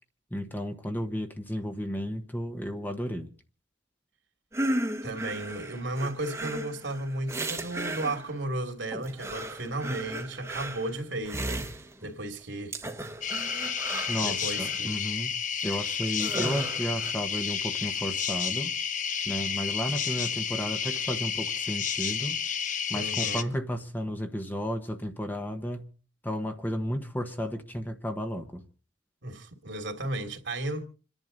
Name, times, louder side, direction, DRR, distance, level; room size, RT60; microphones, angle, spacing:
voice 1, 0.3-3.3 14.1-15.3 15.6-18.7 19.2-22.4 22.9-25.9 26.2-28.6, equal, 10° left, 1.2 m, -33 dB
sound 1, 4.5-8.4 8.9-12.2 12.7-14.8 15.7-15.8 16.0-17.1, right 1 dB, 15° right, 1.3 m, -35 dB
voice 2, 5.0-12.7 14.2-14.9 22.9-23.5 29.2-30.8, right 2 dB, 70° right, 2.8 m, -34 dB
sound 2, 13.2-23.4, left 7 dB, 40° left, 1.0 m, -31 dB
27.5 x 11.0 x 4.0 m
head